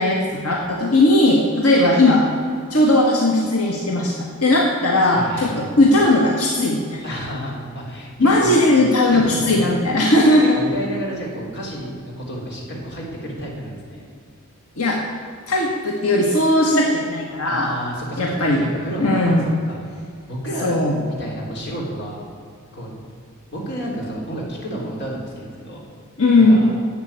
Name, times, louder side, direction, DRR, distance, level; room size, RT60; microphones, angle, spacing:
voice 1, 0.0-2.3 2.7-7.0 8.2-10.6 14.8-15.0 15.5-17.7 18.2-18.6 19.0-19.5 20.6-21.0 26.2-26.7, left 1 dB, 80° left, -1 dB, 1.6 m, -17 dB
voice 2, 5.0-5.7 7.0-8.6 9.1-9.8 10.0-14.0 17.4-18.2 18.6-19.9 20.3-20.7 21.1-22.2 22.7-22.9 23.5-25.8 26.5-26.7, equal, 50° left, -3 dB, 3.6 m, -31 dB
11.5 x 8.1 x 9.0 m, 2.3 s
head